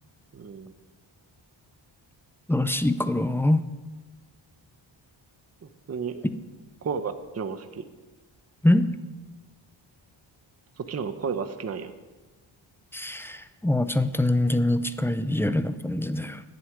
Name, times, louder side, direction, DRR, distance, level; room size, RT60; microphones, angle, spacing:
voice 1, 0.3-0.7 5.9-6.2 6.8-7.8 10.8-11.9, right 6 dB, 35° right, 0.7 m, -32 dB
voice 2, 2.5-3.6 8.6-8.9 12.9-16.4, left 1 dB, 5° left, 0.4 m, -24 dB
10.0 x 7.9 x 9.6 m
wide cardioid pair, 145°, 47 cm